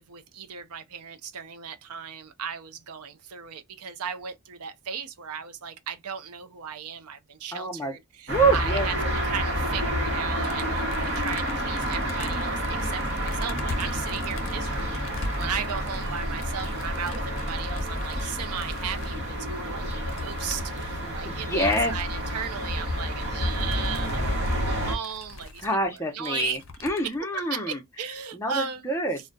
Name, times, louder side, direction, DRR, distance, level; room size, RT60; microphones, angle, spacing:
voice 1, 0.0-9.0 9.2-25.7 26.1-26.6 27.3-29.0, right 7 dB, 85° right, 0.5 m, -36 dB
voice 2, 7.5-7.9 8.3-8.9 21.0-21.9 25.6-27.8 28.3-29.2, right 2 dB, 10° left, 0.7 m, -26 dB
sound 1, 8.3-25.0, equal, 50° right, 1.0 m, -29 dB
sound 2, 10.4-19.2 19.7-19.8 20.1-20.9 21.5-22.5 23.0-23.1 23.3-26.0 26.2-27.2, left 3 dB, 55° left, 0.6 m, -42 dB
2.3 x 2.2 x 3.8 m
head